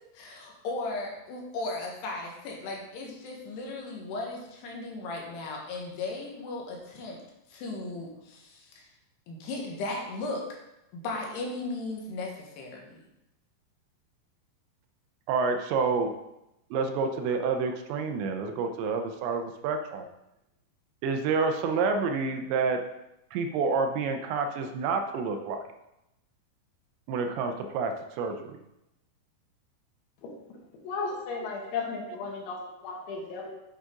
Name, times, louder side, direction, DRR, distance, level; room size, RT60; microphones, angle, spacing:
voice 1, 0.1-7.2 7.5-8.9 9.3-10.5 10.9-13.0, left 2 dB, 70° left, 0 dB, 3.3 m, -36 dB
voice 2, 15.3-16.1 16.7-20.1 21.0-22.9 23.3-25.6 27.1-28.6 31.3-31.7, right 4 dB, 80° right, 6 dB, 2.9 m, -29 dB
voice 3, 30.8-33.5, left 4 dB, 85° left, -1 dB, 4.1 m, -34 dB
8.3 x 7.9 x 3.8 m, 0.89 s
omnidirectional pair, 5.3 m